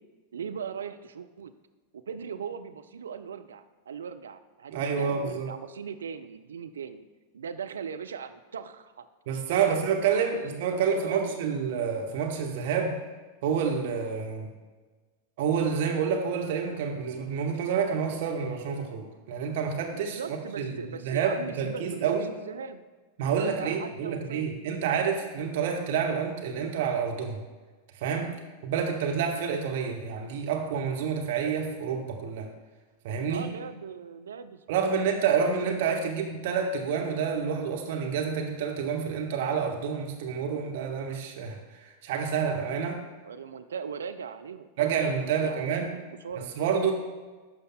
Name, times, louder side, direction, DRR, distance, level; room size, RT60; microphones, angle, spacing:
voice 1, 0.3-1.5 1.9-7.0 7.3-9.1 9.5-11.4 19.9-22.8 23.4-24.5 28.2-28.5 33.3-35.0 35.5-36.1 43.2-44.7 45.3-46.5, right 6 dB, 65° right, 9 dB, 0.4 m, -39 dB
voice 2, 4.7-5.5 9.3-13.0 13.4-14.5 15.4-20.2 20.6-22.2 23.2-27.4 28.0-28.3 28.6-32.5 33.0-33.5 34.7-43.0 44.8-45.9 46.6-46.9, right 6 dB, 50° right, 2 dB, 1.1 m, -28 dB
12.0 x 5.2 x 2.2 m, 1.3 s
figure-of-eight pair, 90°, 0 cm